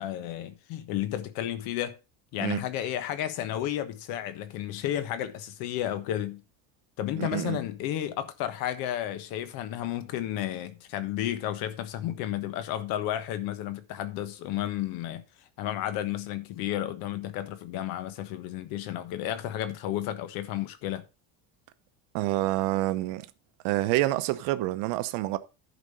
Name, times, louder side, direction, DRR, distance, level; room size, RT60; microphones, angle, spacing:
voice 1, 0.0-1.9 2.3-6.4 7.0-15.2 15.6-21.0, left 12 dB, 65° left, 1.4 m, -32 dB
voice 2, 7.2-7.6 22.1-23.3 23.6-25.4, right 16 dB, 80° right, 0.9 m, -27 dB
10.5 x 5.2 x 5.4 m
cardioid pair, 175°, 39 cm